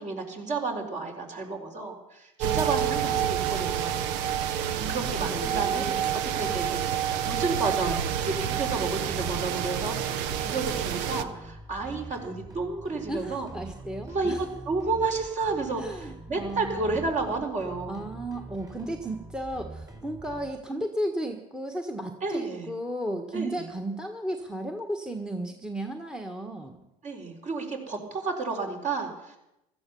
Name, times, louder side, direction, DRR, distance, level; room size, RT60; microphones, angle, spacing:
voice 1, 0.0-4.0 4.9-5.8 6.4-6.9 7.2-13.5 14.1-18.1 22.2-22.7 23.3-23.7 27.0-29.4, right 3 dB, 40° right, 3 dB, 4.4 m, -31 dB
sound 1, 2.4-11.2, right 9 dB, 75° right, 1.0 m, -28 dB
voice 2, 4.8-6.3 13.1-14.4 15.8-17.1 17.9-26.8, right 1 dB, 5° right, 6 dB, 1.4 m, -34 dB
sound 2, 8.0-20.5, right 2 dB, 20° right, 4.0 m, -44 dB
15.5 x 13.0 x 7.0 m, 0.88 s
supercardioid pair, 85°, 18 cm